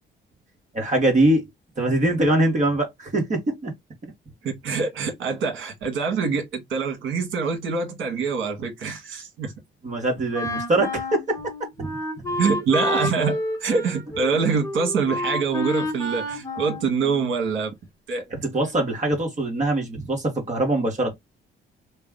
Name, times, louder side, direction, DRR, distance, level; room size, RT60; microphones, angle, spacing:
voice 1, 0.7-1.5 1.8-3.7 4.0-4.1 9.8-11.5 11.8-11.9 12.3-12.4 18.3-21.1, right 1 dB, 40° right, 1.5 m, -23 dB
voice 2, 4.4-9.5 12.4-17.7 18.1-18.3, right 5 dB, 80° right, 1.6 m, -25 dB
Wind instrument woodwind instrument, 10.3-17.5, left 1 dB, 15° left, 1.3 m, -29 dB
3.1 x 2.3 x 3.6 m
cardioid pair, 90°, 20 cm